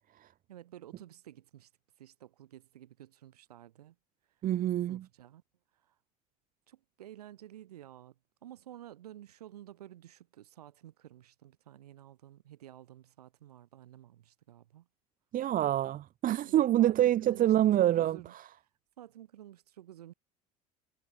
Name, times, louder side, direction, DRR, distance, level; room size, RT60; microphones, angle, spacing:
voice 1, 0.5-1.7 2.0-4.0 4.9-5.4 5.8-5.9 6.7-8.2 8.4-14.9 16.4-18.3 19.0-20.1, right 12 dB, 85° right, 5.7 m, -52 dB
voice 2, 4.4-5.0 15.3-18.2, right 12 dB, 45° right, 1.1 m, -26 dB
hypercardioid pair, 75°, 19 cm